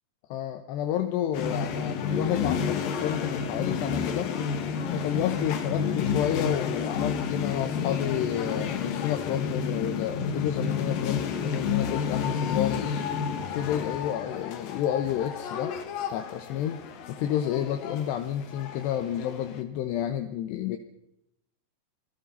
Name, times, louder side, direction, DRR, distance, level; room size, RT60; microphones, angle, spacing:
voice 1, 0.3-4.4 4.9-13.0 13.5-15.8 16.1-20.8, left 10 dB, 75° left, 7 dB, 2.9 m, -30 dB
sound 1, 1.3-19.6, left 6 dB, 60° left, 2.9 m, -30 dB
28.0 x 19.5 x 5.5 m, 0.80 s
omnidirectional pair, 5.5 m